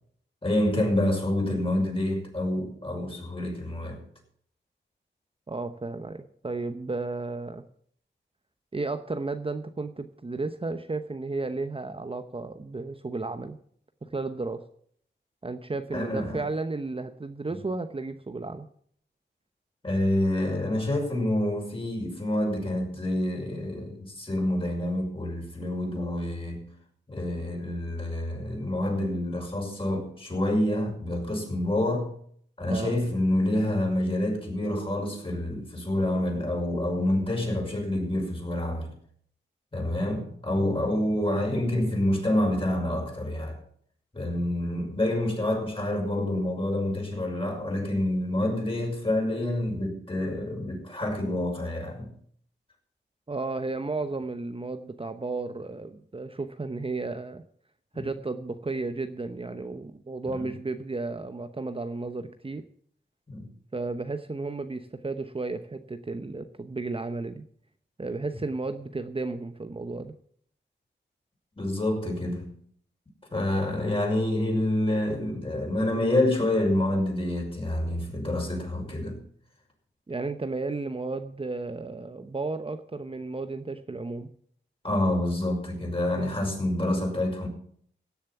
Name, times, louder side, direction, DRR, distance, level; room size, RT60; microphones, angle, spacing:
voice 1, 0.4-4.0 15.9-16.4 19.8-26.7 27.1-32.1 32.6-38.9 39.7-43.6 44.1-52.1 58.0-58.1 60.2-60.4 63.3-63.5 71.6-72.5 73.3-79.2 84.8-87.5, left 1 dB, 30° left, 5.8 m, -27 dB
voice 2, 5.5-7.6 8.7-13.6 14.0-14.6 15.4-18.7 32.7-33.0 53.3-57.4 57.9-62.6 63.7-67.4 68.0-70.1 80.1-84.3, right 3 dB, 30° right, 0.9 m, -33 dB
16.5 x 7.2 x 7.1 m
cardioid pair, 65°, 19 cm